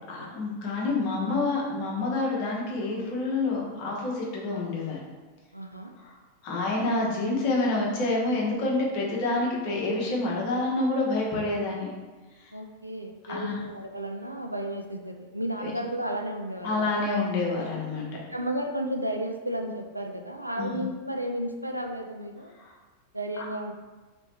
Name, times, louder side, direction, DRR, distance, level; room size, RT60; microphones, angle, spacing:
voice 1, 0.1-5.0 6.0-6.1 6.4-11.9 13.3-13.6 15.6-15.7 16.6-18.2 20.6-20.8 22.6-22.7, left 2 dB, 45° left, -3 dB, 0.9 m, -28 dB
voice 2, 5.5-5.9 12.5-16.8 18.3-22.5 23.1-23.7, right 1 dB, 90° right, 3 dB, 0.3 m, -33 dB
3.0 x 2.9 x 3.2 m, 1.3 s
figure-of-eight pair, 90°, 0 cm